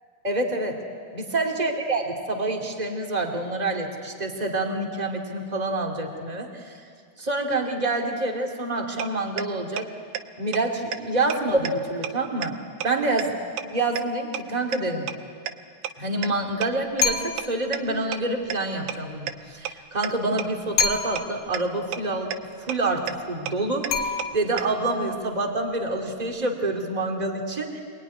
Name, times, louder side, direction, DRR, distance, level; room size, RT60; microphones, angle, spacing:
voice 1, 0.2-0.8 1.1-6.8 7.2-9.9 10.4-12.6 12.8-13.3 13.7-15.1 16.0-22.3 22.6-27.8, right 2 dB, 15° right, 2 dB, 2.3 m, -27 dB
sound 1, 9.0-9.1 9.4-9.5 9.8-9.9 10.1-10.2 10.5-10.6 10.9-11.0 11.3-11.4 11.6-11.7 12.0-12.1 12.4-12.5 12.8-12.9 13.2-13.3 13.6-13.7 13.9-14.0 14.3-14.4 14.7-14.8 15.1-15.2 15.5-15.6 15.8-15.9 16.2-16.3 16.6-16.7 17.0-17.1 17.4-17.5 17.7-17.8 18.1-18.2 18.5-18.6 18.9-19.0 19.3-19.4 19.6-19.7 20.0-20.1 20.4-20.5 20.8-20.9 21.2-21.3 21.5-21.6 21.9-22.0 22.3-22.4 22.7-22.8 23.1-23.2 23.5-23.6 23.8-23.9 24.2-24.3 24.6-24.7, right 11 dB, 75° right, 2.2 m, -29 dB
sound 2, 17.0-17.6 20.8-21.5 23.9-24.7, left 5 dB, 45° left, 2.7 m, -26 dB
27.0 x 21.0 x 9.9 m, 2.1 s
omnidirectional pair, 3.5 m